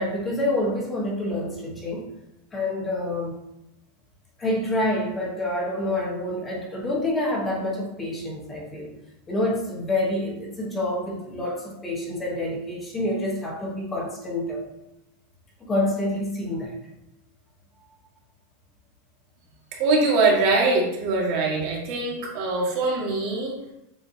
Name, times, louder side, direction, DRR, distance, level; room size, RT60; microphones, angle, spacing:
voice 1, 0.0-2.1 2.5-3.4 4.4-8.9 9.3-14.7 15.6-16.7, left 1 dB, 15° left, -3 dB, 1.1 m, -27 dB
voice 2, 19.8-23.5, right 3 dB, 55° right, -3 dB, 1.5 m, -22 dB
6.9 x 2.6 x 2.6 m, 0.88 s
supercardioid pair, 145°, 0 cm